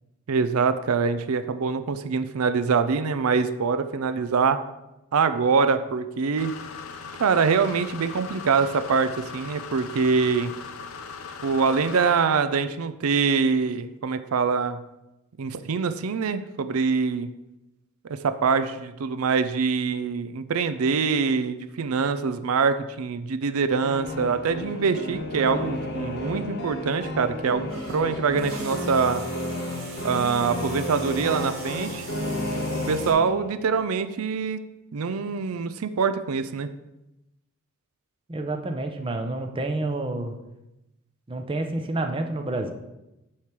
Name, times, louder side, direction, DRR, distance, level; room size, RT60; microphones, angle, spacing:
voice 1, 0.3-4.6 5.1-6.5 7.2-10.5 11.4-14.8 15.4-17.3 18.1-29.2 30.0-32.1 32.9-34.6 34.9-36.7, right 5 dB, 90° right, 11 dB, 0.5 m, -24 dB
sound 1, 6.4-12.4, left 5 dB, 85° left, 0.7 m, -39 dB
sound 2, 23.8-33.6, left 1 dB, 50° left, 1.0 m, -32 dB
sound 3, 27.7-33.1, right 3 dB, 65° right, 2.2 m, -42 dB
voice 2, 38.3-40.4 41.3-42.7, right 2 dB, 25° right, 5 dB, 0.6 m, -29 dB
8.6 x 3.2 x 5.9 m, 0.94 s
head